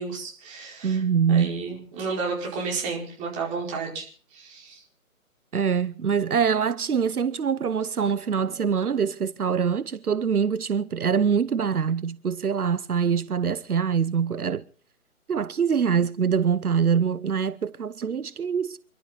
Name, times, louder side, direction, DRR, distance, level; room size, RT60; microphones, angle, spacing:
voice 1, 0.0-1.0 1.3-4.8, right 4 dB, 15° right, 5.0 m, -32 dB
voice 2, 0.8-1.6 5.5-14.6 15.3-18.8, right 6 dB, 80° right, 0.8 m, -24 dB
28.5 x 12.5 x 4.0 m
figure-of-eight pair, 145°, 44 cm